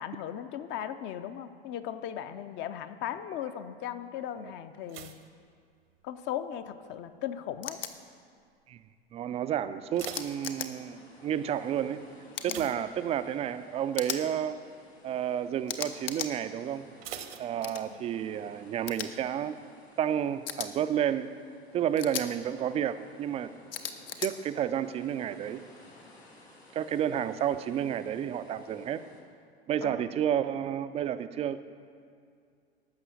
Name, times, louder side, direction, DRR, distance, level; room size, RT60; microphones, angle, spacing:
voice 1, 0.0-5.1 6.0-7.8 12.5-12.8 17.7-18.0 29.8-30.1, left 10 dB, 35° left, 11 dB, 0.6 m, -38 dB
sound 1, 4.9-6.4 6.6-7.1 7.7-8.1 8.4-8.5 8.9-9.0 9.6-11.2 12.4-13.6 13.9-14.2 14.6-14.7 17.0-18.2 18.5-18.6, right 9 dB, 65° right, 0.9 m, -45 dB
sound 2, 7.6-7.9 10.0-10.7 12.3-12.6 13.9-14.2 15.7-16.3 17.6-17.8 18.9-19.1 20.5-20.7 22.0-22.3 23.7-24.3, left 8 dB, 65° left, 0.9 m, -36 dB
voice 2, 9.1-12.0 12.4-14.6 15.0-16.8 17.4-19.6 20.0-21.3 21.7-23.5 24.2-25.6 26.7-29.0 29.7-31.6, right 10 dB, 20° right, 11 dB, 0.4 m, -31 dB
sound 3, 9.9-29.2, left 1 dB, 90° left, 1.8 m, -56 dB
12.0 x 6.2 x 7.6 m, 2.3 s
figure-of-eight pair, 85°, 31 cm